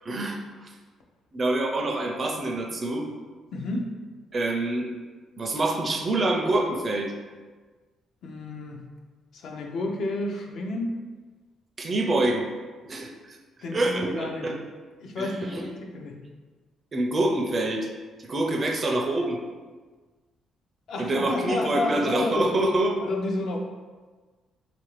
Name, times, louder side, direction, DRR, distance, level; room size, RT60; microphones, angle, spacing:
voice 1, 0.0-0.4 1.3-3.1 4.3-4.9 5.4-7.1 11.8-12.5 12.8-13.4 13.7-14.6 15.2-15.3 16.9-17.9 18.2-19.4 21.0-22.9, right 2 dB, 35° right, 2 dB, 0.4 m, -26 dB
voice 2, 3.5-3.9 8.2-8.9 9.3-11.0 13.6-14.5 15.0-16.2 20.9-22.5 23.0-23.6, left 2 dB, 65° left, 1 dB, 0.4 m, -30 dB
2.6 x 2.5 x 3.1 m, 1.4 s
cardioid pair, 115°, 0 cm